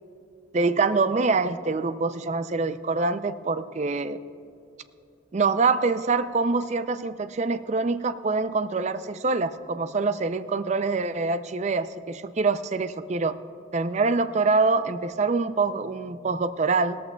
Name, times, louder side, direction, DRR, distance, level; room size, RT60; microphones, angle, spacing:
voice 1, 0.5-4.2 5.3-13.4 13.7-17.0, right 4 dB, 35° right, 12 dB, 0.4 m, -25 dB
20.0 x 14.0 x 2.3 m, 2.6 s
head